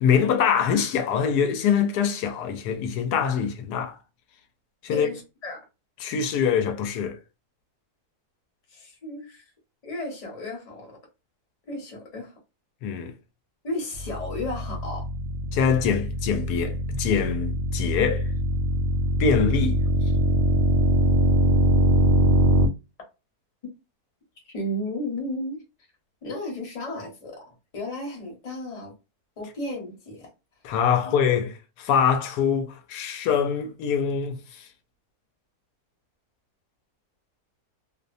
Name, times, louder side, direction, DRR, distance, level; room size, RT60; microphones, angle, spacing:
voice 1, 0.0-4.0 4.8-5.1 6.0-7.2 12.8-13.1 15.5-18.3 19.2-19.8 30.6-34.6, left 7 dB, 85° left, 1.1 m, -24 dB
voice 2, 4.9-5.6 8.7-9.4 9.8-11.0 11.7-12.3 13.6-15.1 24.4-25.6 26.2-27.4 27.7-28.9 29.4-30.3 31.0-31.2, left 1 dB, 30° left, 0.9 m, -33 dB
sound 1, 13.9-22.7, equal, 70° right, 0.6 m, -23 dB
2.8 x 2.1 x 2.5 m
omnidirectional pair, 1.6 m